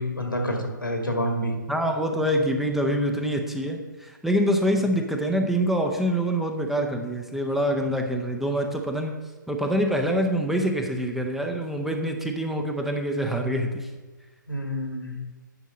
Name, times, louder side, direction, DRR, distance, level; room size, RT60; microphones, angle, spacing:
voice 1, 0.0-1.5 14.5-15.1, equal, 90° left, 3 dB, 2.1 m, -28 dB
voice 2, 1.7-9.1 9.5-13.9, equal, ahead, 3 dB, 0.5 m, -25 dB
9.8 x 5.4 x 5.1 m, 1.3 s
figure-of-eight pair, 130°, 11 cm